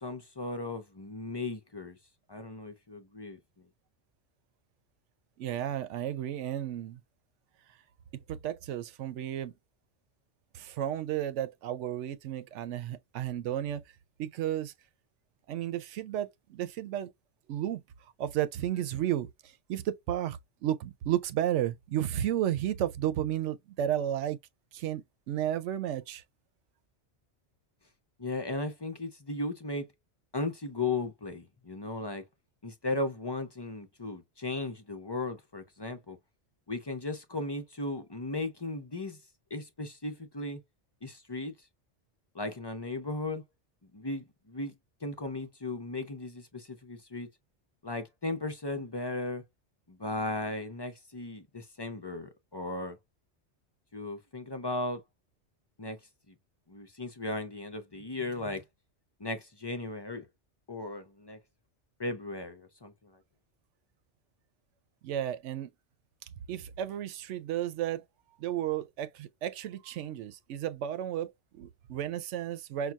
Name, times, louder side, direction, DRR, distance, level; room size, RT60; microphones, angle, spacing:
voice 1, 0.0-2.0 2.3-3.6 28.2-29.9 30.3-32.2 32.6-36.2 36.7-39.2 39.5-40.6 41.0-41.5 42.3-43.4 43.9-44.7 45.0-47.3 47.8-49.4 49.9-53.0 53.9-55.0 55.8-56.0 56.3-56.4 56.7-58.6 59.2-60.3 60.7-61.4 62.0-63.1, left 2 dB, 30° left, 0.4 m, -36 dB
voice 2, 5.4-7.0 8.3-9.5 10.5-13.8 14.2-14.7 15.5-17.1 17.5-17.8 18.2-24.4 24.7-26.2 65.0-65.7 66.5-68.0 68.4-72.9, right 11 dB, 90° right, 0.9 m, -33 dB
5.9 x 2.2 x 2.4 m
omnidirectional pair, 1.2 m